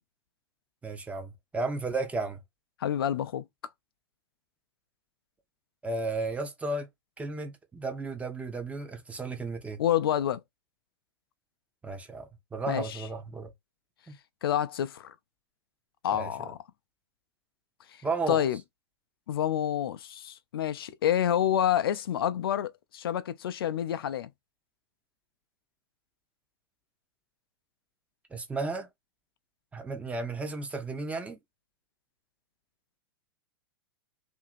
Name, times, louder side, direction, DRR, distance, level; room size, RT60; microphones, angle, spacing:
voice 1, 0.8-2.4 5.8-6.9 7.2-9.8 11.8-13.5 14.1-14.2 16.1-16.3 18.0-18.4 28.3-28.9 29.7-31.4, right 3 dB, 10° right, 0.6 m, -34 dB
voice 2, 2.8-3.4 9.8-10.4 12.7-13.0 14.4-15.1 16.0-16.6 18.3-18.6 19.3-24.3, left 10 dB, 70° left, 0.4 m, -28 dB
2.7 x 2.6 x 2.4 m
figure-of-eight pair, 100°, 13 cm